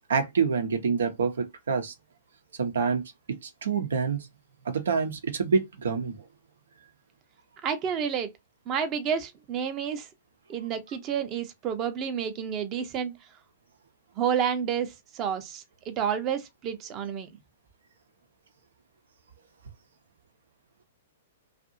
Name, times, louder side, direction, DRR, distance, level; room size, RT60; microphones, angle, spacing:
voice 1, 0.1-1.9 2.6-3.0 3.4-4.3 4.6-6.2, right 5 dB, 75° right, 0.8 m, -27 dB
voice 2, 7.6-8.3 8.7-10.1 10.5-13.1 14.2-17.3, right 8 dB, 35° right, 0.7 m, -30 dB
2.7 x 2.5 x 2.6 m
hypercardioid pair, 115°, 0 cm